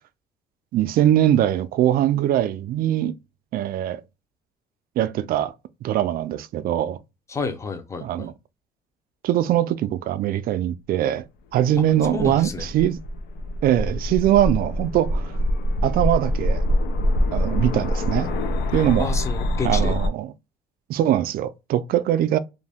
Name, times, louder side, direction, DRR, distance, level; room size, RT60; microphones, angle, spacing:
voice 1, 0.7-3.2 3.5-4.0 5.0-5.5 5.8-7.0 8.0-8.3 9.2-11.2 11.5-13.0 13.6-15.3 15.8-16.6 17.3-18.3 18.7-19.1 19.6-20.3 20.9-22.4, right 11 dB, 60° right, 0.4 m, -22 dB
voice 2, 7.3-8.3 11.8-11.9 12.1-12.7 19.0-20.0, left 4 dB, 15° left, 0.6 m, -30 dB
sound 1, 11.7-20.1, left 1 dB, 75° left, 0.6 m, -24 dB
2.5 x 2.2 x 3.4 m
cardioid pair, 110°, 17 cm